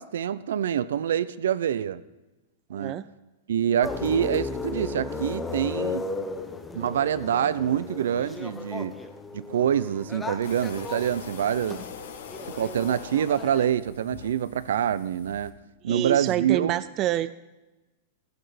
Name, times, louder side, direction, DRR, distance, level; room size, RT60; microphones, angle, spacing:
voice 1, 0.0-2.0 2.7-3.0 3.5-6.1 6.7-9.0 9.3-11.8 12.6-15.5 15.8-16.8, right 9 dB, 80° right, 17 dB, 0.6 m, -26 dB
voice 2, 2.7-3.1 15.9-17.3, right 13 dB, 30° right, 15 dB, 0.3 m, -27 dB
sound 1, 3.8-13.7, left 3 dB, 10° left, 0.8 m, -35 dB
sound 2, 10.4-15.5, left 7 dB, 80° left, 1.6 m, -42 dB
15.5 x 8.0 x 5.0 m, 1.1 s
supercardioid pair, 155°, 0 cm